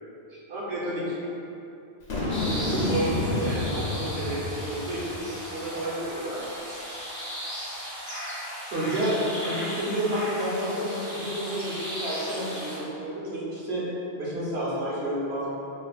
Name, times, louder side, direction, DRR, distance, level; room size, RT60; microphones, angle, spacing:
voice 1, 0.3-1.1 2.5-6.5 8.7-13.8 14.1-15.5, right 1 dB, 75° right, -8 dB, 1.2 m, -30 dB
Boom, 2.1-5.4, left 2 dB, 85° left, 1.0 m, -30 dB
sound 1, 2.3-12.8, equal, 20° right, 1.0 m, -36 dB
5.3 x 2.4 x 2.4 m, 2.9 s
omnidirectional pair, 1.1 m